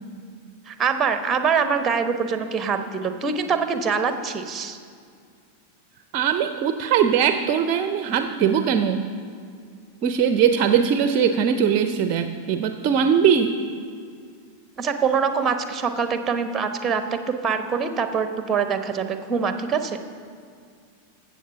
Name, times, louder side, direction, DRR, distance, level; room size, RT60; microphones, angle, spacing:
voice 1, 0.7-4.8 14.8-20.0, right 6 dB, 20° right, 8 dB, 0.9 m, -24 dB
voice 2, 6.1-9.0 10.0-13.6, right 7 dB, 40° right, 9 dB, 0.6 m, -20 dB
15.0 x 7.4 x 5.7 m, 2.2 s
figure-of-eight pair, 90°, 0 cm